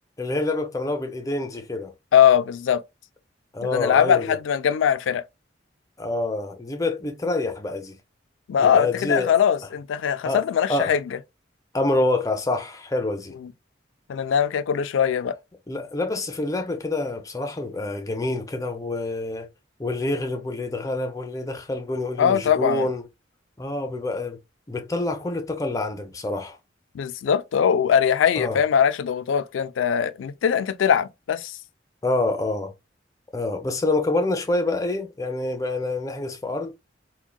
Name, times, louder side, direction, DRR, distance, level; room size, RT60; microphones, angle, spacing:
voice 1, 0.2-1.9 3.5-4.4 6.0-8.0 8.6-9.3 10.2-10.4 10.7-10.9 11.7-13.3 15.7-19.5 19.8-23.1 23.6-24.4 24.7-26.6 28.4-28.6 32.0-32.7 33.3-36.7, left 2 dB, 15° left, 0.5 m, -27 dB
voice 2, 2.1-2.8 3.6-5.2 8.5-11.2 13.4-13.5 14.1-15.3 22.2-22.9 26.9-31.6, left 8 dB, 85° left, 0.3 m, -21 dB
3.6 x 2.2 x 2.2 m
head